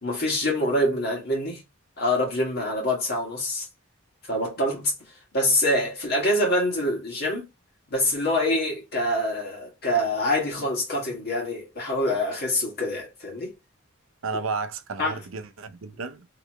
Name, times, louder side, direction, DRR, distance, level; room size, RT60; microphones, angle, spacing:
voice 1, 0.0-1.6 2.0-3.7 4.3-4.9 5.3-7.5 7.9-13.5 15.0-15.2, left 1 dB, 50° left, 1.7 m, -25 dB
voice 2, 14.2-16.3, right 4 dB, 70° right, 0.6 m, -32 dB
3.1 x 3.0 x 3.0 m
head